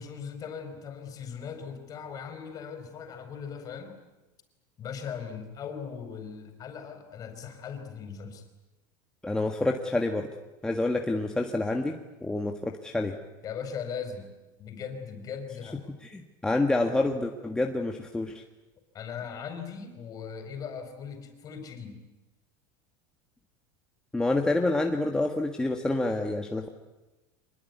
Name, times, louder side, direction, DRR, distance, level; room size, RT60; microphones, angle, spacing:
voice 1, 0.0-4.0 4.8-8.5 13.4-14.3 14.6-15.9 18.9-22.0, left 6 dB, 35° left, 7 dB, 4.9 m, -39 dB
voice 2, 9.2-10.3 10.6-13.2 16.0-18.3 24.1-26.7, left 2 dB, 5° left, 2 dB, 1.5 m, -28 dB
25.5 x 21.0 x 9.6 m, 1.1 s
supercardioid pair, 140°, 11 cm